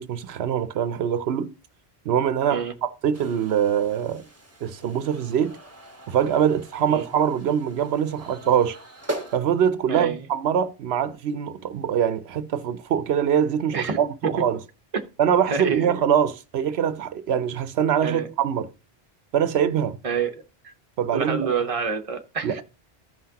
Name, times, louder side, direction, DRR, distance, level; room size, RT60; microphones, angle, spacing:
voice 1, 0.0-1.5 2.1-4.3 4.6-5.6 6.1-8.8 9.3-14.6 15.2-18.7 19.3-20.0 21.0-21.5 22.4-22.6, right 8 dB, 80° right, 0.9 m, -23 dB
sound 1, 3.1-9.4, right 1 dB, 15° right, 1.1 m, -40 dB
voice 2, 9.9-10.2 13.7-14.0 14.9-15.0 15.5-15.9 18.0-18.3 20.0-20.7 21.1-22.6, right 6 dB, 35° right, 0.9 m, -27 dB
15.0 x 5.7 x 2.8 m
omnidirectional pair, 1.1 m